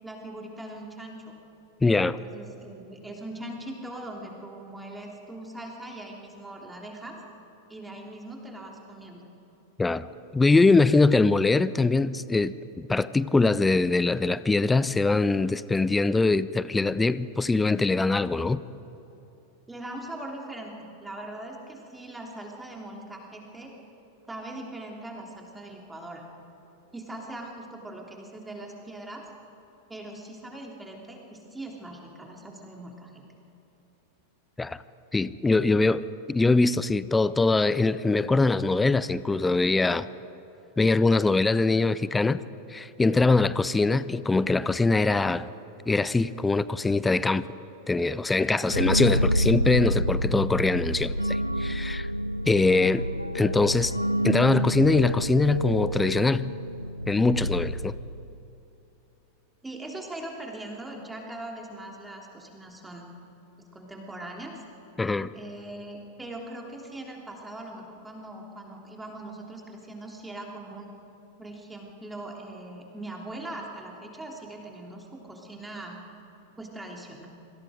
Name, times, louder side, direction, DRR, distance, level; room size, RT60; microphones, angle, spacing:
voice 1, 0.0-1.3 2.0-7.2 7.7-9.3 19.7-23.7 24.3-26.2 26.9-29.3 29.9-33.2 48.6-48.9 59.6-63.1 63.6-64.6 65.3-70.9 71.4-76.0 76.6-77.3, right 1 dB, 10° right, 0 dB, 3.3 m, -41 dB
voice 2, 1.8-2.2 9.8-10.1 10.3-18.6 34.6-34.8 35.1-40.1 40.8-42.4 42.7-45.5 45.9-47.4 47.9-52.1 52.5-53.1 53.3-54.0 54.2-56.5 57.1-57.9 65.0-65.3, left 3 dB, 10° left, 17 dB, 0.6 m, -23 dB
sound 1, 48.7-58.4, equal, 90° right, 0.5 m, -28 dB
27.0 x 25.0 x 5.1 m, 2.9 s
figure-of-eight pair, 90°, 0 cm